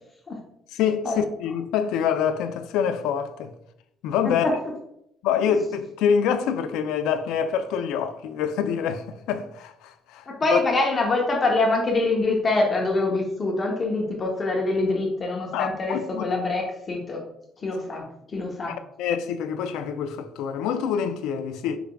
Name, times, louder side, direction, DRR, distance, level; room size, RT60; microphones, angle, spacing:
voice 1, 0.8-3.5 4.0-4.4 5.2-10.2 10.5-10.6 15.5-16.2 19.0-21.8, left 7 dB, 90° left, 0.4 m, -26 dB
voice 2, 10.3-17.2 17.6-18.8, left 2 dB, 30° left, 0.8 m, -25 dB
4.8 x 3.4 x 2.3 m
cardioid pair, 115°, 0 cm